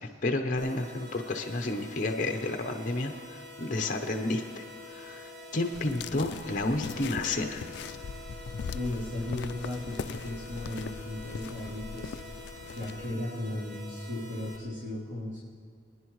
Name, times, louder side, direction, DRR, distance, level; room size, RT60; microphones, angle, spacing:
voice 1, 0.2-7.6, left 2 dB, 45° left, 4 dB, 0.8 m, -31 dB
sound 1, 0.6-14.6, left 1 dB, 45° right, 1.7 m, -46 dB
sound 2, 5.7-13.1, left 6 dB, 70° left, 0.3 m, -41 dB
voice 2, 8.7-12.1 12.7-15.4, left 1 dB, 80° right, -9 dB, 3.2 m, -36 dB
23.0 x 10.0 x 3.1 m, 2.2 s
head